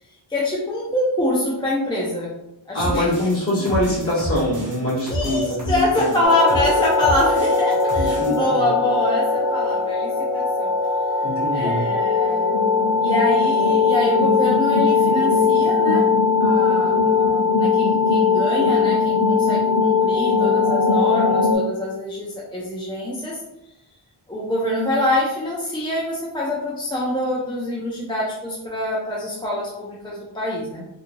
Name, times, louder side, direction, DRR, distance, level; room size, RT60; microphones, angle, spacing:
voice 1, 0.3-2.3 2.7-3.1 5.1-10.7 11.5-12.5 13.0-16.1 16.4-23.4 24.3-30.9, left 1 dB, 10° left, -5 dB, 0.3 m, -25 dB
voice 2, 2.7-6.1 8.0-8.7 11.2-11.8, left 1 dB, 30° left, -9 dB, 1.3 m, -24 dB
sound 1, 2.8-8.4, right 1 dB, 40° right, 0.9 m, -30 dB
sound 2, 6.2-21.6, left 4 dB, 55° left, 0.7 m, -19 dB
2.9 x 2.5 x 2.5 m, 0.87 s
wide cardioid pair, 175°, 48 cm